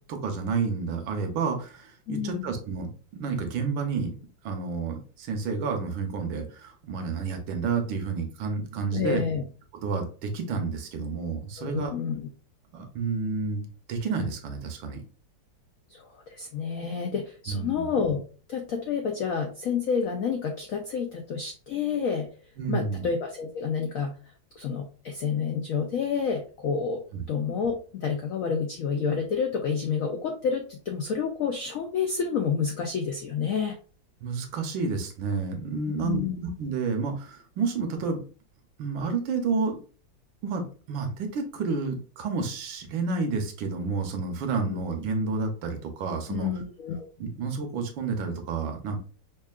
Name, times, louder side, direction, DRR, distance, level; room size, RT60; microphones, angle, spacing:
voice 1, 0.1-4.2 4.4-9.2 9.8-11.9 12.7-15.0 17.5-17.9 22.6-23.0 27.1-27.2 34.2-38.2 38.8-39.8 40.4-46.5 47.2-49.0, right 4 dB, 80° right, 5 dB, 1.5 m, -30 dB
voice 2, 2.1-2.5 8.9-9.4 11.6-12.3 15.9-18.2 18.5-22.3 22.7-24.2 24.6-33.8 36.0-36.4 44.7-44.8 46.3-47.1, left 6 dB, 80° left, 3 dB, 0.7 m, -29 dB
5.3 x 2.4 x 2.3 m, 0.37 s
omnidirectional pair, 2.1 m